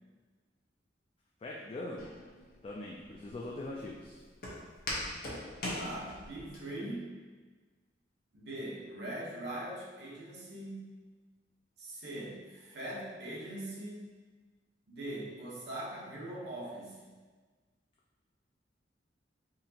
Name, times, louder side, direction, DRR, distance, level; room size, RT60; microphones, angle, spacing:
voice 1, 1.4-2.2 2.6-4.2, left 2 dB, 30° left, -3 dB, 0.3 m, -41 dB
Walk footsteps, 2.0-6.6, left 1 dB, 50° left, 0.8 m, -41 dB
voice 2, 5.8-7.0 8.3-10.8 11.8-14.1 14.9-17.1, right 1 dB, 70° right, -4 dB, 0.9 m, -41 dB
4.1 x 2.8 x 2.8 m, 1.4 s
head